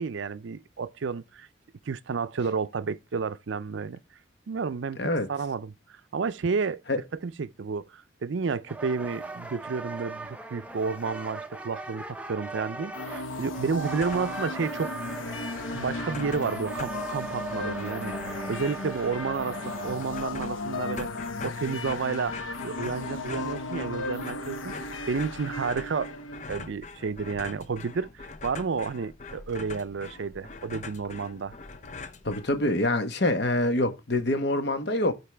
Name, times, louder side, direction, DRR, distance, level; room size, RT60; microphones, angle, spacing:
voice 1, 0.0-1.5 1.9-4.0 4.5-5.0 5.3-5.7 6.1-14.9 15.7-26.2 26.5-31.6, right 5 dB, 70° right, 0.5 m, -31 dB
voice 2, 5.0-5.3 6.9-7.0 32.2-35.1, left 1 dB, 55° left, 1.1 m, -25 dB
sound 1, 8.7-20.4, right 3 dB, 5° right, 0.6 m, -39 dB
sound 2, 12.9-26.4, left 2 dB, 90° left, 1.0 m, -35 dB
sound 3, 14.0-14.5 14.8-14.9 15.1-32.9, left 4 dB, 35° left, 0.7 m, -43 dB
13.5 x 4.6 x 3.4 m
head